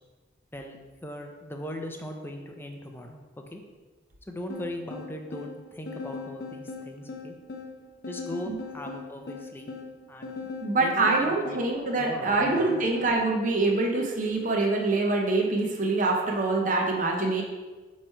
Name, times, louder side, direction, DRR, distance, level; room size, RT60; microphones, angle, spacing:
voice 1, 0.5-3.6 4.3-7.4 8.1-9.7 10.1-10.3 10.8-11.6 12.0-12.8, left 1 dB, 10° left, 3 dB, 0.5 m, -39 dB
sound 1, 4.5-13.2, left 4 dB, 55° left, 0.6 m, -39 dB
voice 2, 10.6-17.4, right 3 dB, 40° right, 0 dB, 0.7 m, -25 dB
7.8 x 3.2 x 4.4 m, 1.3 s
head